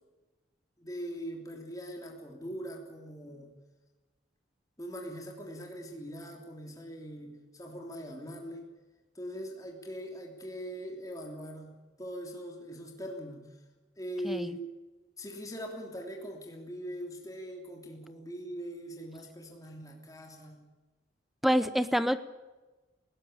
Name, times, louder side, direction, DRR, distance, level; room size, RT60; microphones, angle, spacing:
voice 1, 0.8-3.5 4.8-8.7 9.1-13.6 14.0-14.6 15.2-20.7, equal, 20° left, 1 dB, 3.2 m, -41 dB
voice 2, 21.4-22.2, equal, ahead, 13 dB, 0.8 m, -26 dB
20.0 x 17.0 x 8.8 m, 1.2 s
head